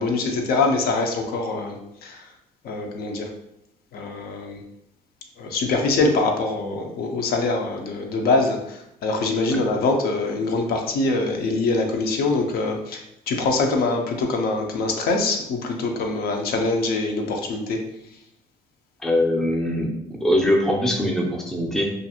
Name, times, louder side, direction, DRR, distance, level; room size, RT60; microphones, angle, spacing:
voice 1, 0.0-2.3 2.6-3.3 3.9-4.6 5.4-17.8, left 3 dB, 65° left, 3 dB, 0.5 m, -24 dB
voice 2, 19.0-19.9 20.2-21.9, left 1 dB, 5° left, 0 dB, 0.4 m, -21 dB
2.5 x 2.3 x 2.7 m, 0.80 s
cardioid pair, 110°, 17 cm